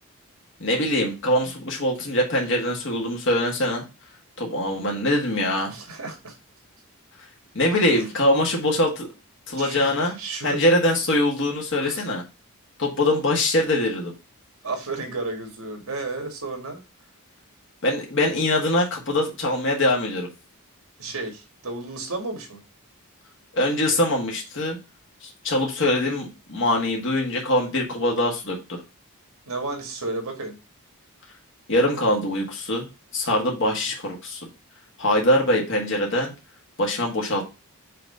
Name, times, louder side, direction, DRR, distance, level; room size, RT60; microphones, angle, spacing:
voice 1, 0.6-3.8 4.4-5.7 7.5-9.1 9.5-10.1 10.4-12.2 12.8-14.1 17.8-20.3 23.5-24.8 25.2-28.6 31.7-32.9 33.1-34.4 35.0-36.3 36.8-37.5, left 1 dB, 55° left, 0 dB, 1.6 m, -23 dB
voice 2, 5.7-6.3 7.9-8.0 9.6-10.6 11.8-12.1 14.6-16.8 21.0-22.6 29.5-30.6, right 3 dB, 70° right, 4 dB, 2.0 m, -32 dB
5.9 x 3.2 x 5.4 m, 0.28 s
head